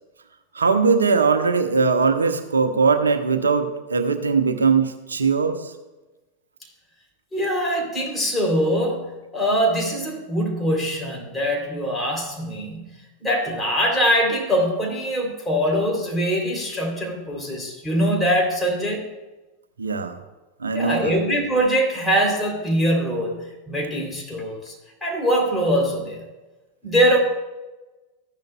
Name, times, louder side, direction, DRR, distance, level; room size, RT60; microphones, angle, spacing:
voice 1, 0.5-5.7 19.8-20.2 20.6-21.1, right 5 dB, 75° right, 8 dB, 0.9 m, -20 dB
voice 2, 7.3-19.1 20.7-24.7 25.0-26.2 26.8-27.2, equal, 10° left, 0 dB, 3.2 m, -23 dB
14.5 x 10.5 x 2.3 m, 1.1 s
figure-of-eight pair, 90°, 0 cm